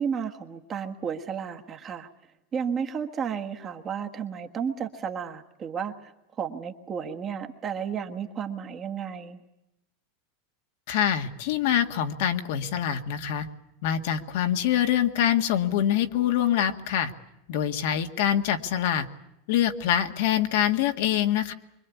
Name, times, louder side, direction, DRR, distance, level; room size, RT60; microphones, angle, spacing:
voice 1, 0.0-2.1 2.5-6.1 6.4-9.4, right 7 dB, 20° right, 4 dB, 1.5 m, -32 dB
voice 2, 10.9-13.5 13.8-17.1 17.5-19.1 19.5-21.5, left 10 dB, 60° left, 6 dB, 1.8 m, -25 dB
25.0 x 23.5 x 8.4 m, 0.88 s
supercardioid pair, 170°, 0 cm